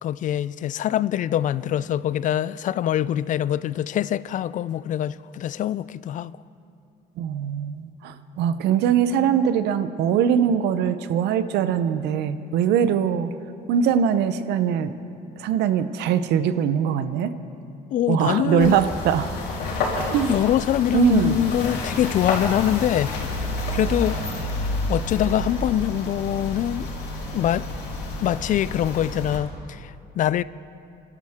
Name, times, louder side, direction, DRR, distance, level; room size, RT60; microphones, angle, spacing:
voice 1, 0.0-6.3 17.9-18.8 20.3-23.1 23.7-26.9 27.3-27.7 28.2-30.4, left 11 dB, 50° left, 0.4 m, -24 dB
voice 2, 7.2-13.3 13.7-14.9 15.4-17.3 18.1-19.3 20.1-20.3 20.9-21.4, right 8 dB, 80° right, 0.8 m, -22 dB
sound 1, 18.6-29.4, left 2 dB, 85° left, 3.7 m, -29 dB
26.0 x 12.5 x 3.6 m
cardioid pair, 110°, 17 cm